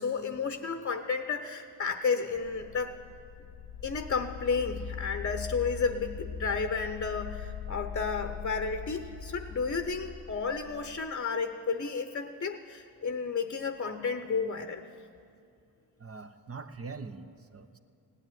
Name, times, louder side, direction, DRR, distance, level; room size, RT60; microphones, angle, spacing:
voice 1, 0.0-3.0 3.8-14.8, left 5 dB, 35° left, 8 dB, 0.8 m, -32 dB
sound 1, 2.3-11.1, left 6 dB, 85° left, 0.9 m, -41 dB
voice 2, 16.0-17.8, right 4 dB, 35° right, 9 dB, 0.9 m, -43 dB
17.0 x 8.9 x 9.2 m, 2.5 s
cardioid pair, 65°, 40 cm